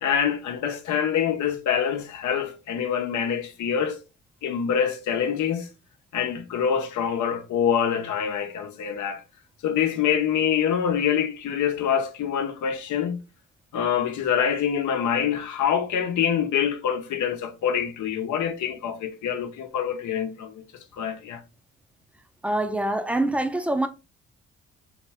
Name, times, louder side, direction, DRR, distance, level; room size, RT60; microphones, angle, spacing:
voice 1, 0.0-4.0 4.4-5.7 6.1-9.2 9.6-13.2 13.7-20.6 20.9-21.4, left 8 dB, 75° left, 0.9 m, -25 dB
voice 2, 22.4-23.9, right 1 dB, 5° right, 0.6 m, -25 dB
3.8 x 3.1 x 3.5 m
cardioid pair, 90°, 30 cm